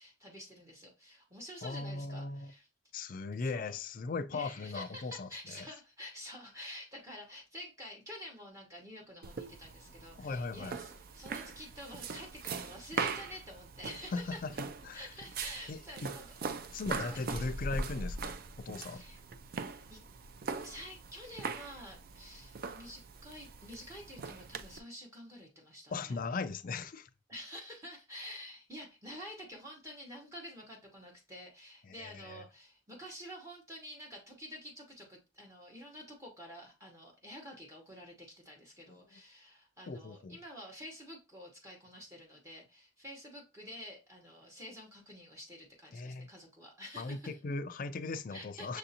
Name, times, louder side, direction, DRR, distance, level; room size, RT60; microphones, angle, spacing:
voice 1, 0.0-2.7 3.3-3.7 4.3-14.4 14.9-16.3 16.8-17.4 18.9-19.2 19.9-20.0 20.6-26.2 27.3-47.4 48.3-48.8, equal, 15° right, 1.0 m, -49 dB
voice 2, 1.6-2.5 2.9-5.3 5.6-5.7 10.2-10.8 14.1-15.1 15.7-16.1 16.7-19.0 25.9-27.1 31.8-32.4 38.9-39.2 39.9-40.4 45.9-46.3 47.0-48.8, left 3 dB, 45° left, 0.4 m, -38 dB
sound 1, 9.2-24.8, right 4 dB, 50° right, 0.4 m, -41 dB
6.5 x 2.6 x 2.7 m
head